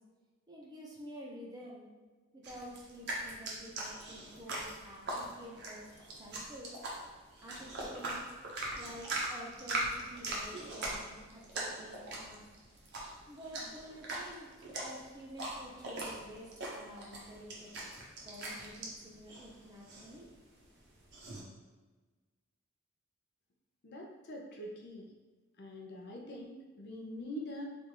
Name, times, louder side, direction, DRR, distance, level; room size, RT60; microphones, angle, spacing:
voice 1, 0.5-1.9 2.3-5.9 6.2-6.8 7.4-8.3 8.8-12.5 13.3-14.5 14.8-17.8 18.2-20.3, equal, 20° right, -3 dB, 0.7 m, -50 dB
sound 1, 2.4-21.4, right 2 dB, 55° right, 0.8 m, -41 dB
voice 2, 23.8-25.1 25.6-27.8, equal, 50° left, 0 dB, 0.6 m, -44 dB
3.3 x 2.5 x 4.4 m, 1.3 s
head